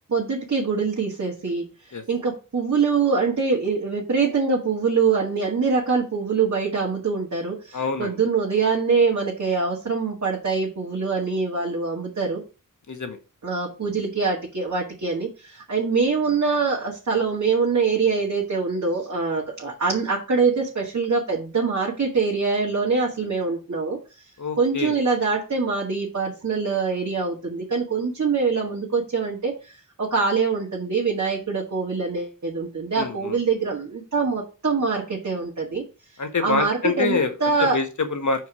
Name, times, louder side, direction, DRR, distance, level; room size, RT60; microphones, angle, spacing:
voice 1, 0.1-1.7 2.1-12.4 13.4-24.0 24.6-35.8 36.4-37.8, right 4 dB, 55° right, -4 dB, 1.9 m, -24 dB
voice 2, 7.7-8.2 12.9-13.2 24.4-24.9 32.9-33.4 36.2-38.5, left 4 dB, 60° left, 6 dB, 1.3 m, -26 dB
5.1 x 4.7 x 6.0 m, 0.32 s
wide cardioid pair, 95°, 33 cm